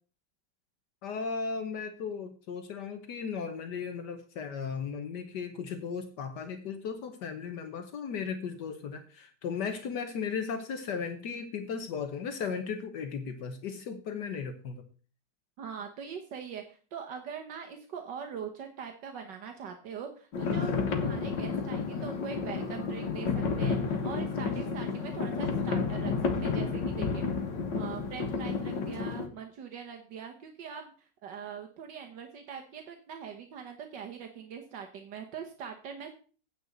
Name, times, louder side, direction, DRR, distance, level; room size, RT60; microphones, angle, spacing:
voice 1, 1.0-14.8, left 6 dB, 70° left, 8 dB, 1.5 m, -36 dB
voice 2, 15.6-27.3 27.7-36.1, right 7 dB, 75° right, 4 dB, 1.8 m, -42 dB
sound 1, 20.3-29.3, left 5 dB, 85° left, 2.2 m, -31 dB
9.3 x 5.3 x 7.8 m, 0.39 s
omnidirectional pair, 1.9 m